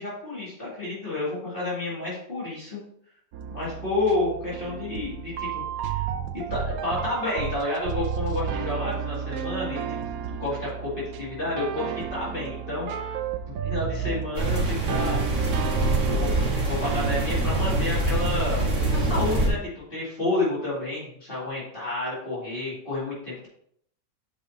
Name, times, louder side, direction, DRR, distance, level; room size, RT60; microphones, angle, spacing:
voice 1, 0.0-2.8 3.5-6.0 6.3-9.8 10.3-13.2 13.5-15.2 16.0-23.5, left 2 dB, 35° left, -8 dB, 2.6 m, -30 dB
sound 1, 3.3-19.0, right 8 dB, 80° right, 1.1 m, -32 dB
sound 2, 14.3-19.5, right 1 dB, 55° right, 1.8 m, -25 dB
8.2 x 5.1 x 2.8 m, 0.67 s
omnidirectional pair, 1.5 m